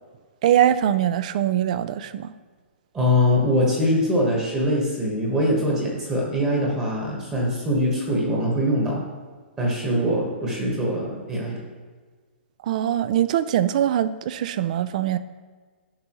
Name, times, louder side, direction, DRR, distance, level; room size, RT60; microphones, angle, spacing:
voice 1, 0.4-2.3 12.6-15.2, right 11 dB, 40° right, 14 dB, 0.3 m, -22 dB
voice 2, 2.9-9.0 9.6-11.6, equal, 10° right, -2 dB, 1.3 m, -23 dB
10.5 x 5.2 x 3.0 m, 1.5 s
hypercardioid pair, 160°, 6 cm